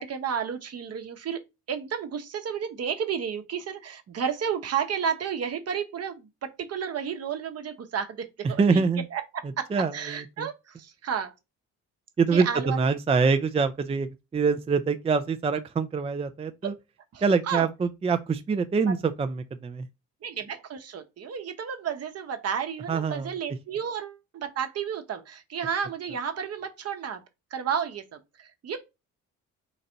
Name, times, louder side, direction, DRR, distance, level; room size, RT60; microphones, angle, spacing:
voice 1, 0.0-1.4 1.7-8.8 9.1-11.3 12.3-12.9 17.1-17.7 18.9-19.0 20.2-27.2 27.5-28.8, right 7 dB, 55° right, 0.9 m, -32 dB
voice 2, 8.4-9.0 9.7-10.5 12.2-16.7 17.2-19.9 22.9-23.3, right 5 dB, 20° right, 0.4 m, -25 dB
4.0 x 2.6 x 4.3 m
cardioid pair, 90°, 30 cm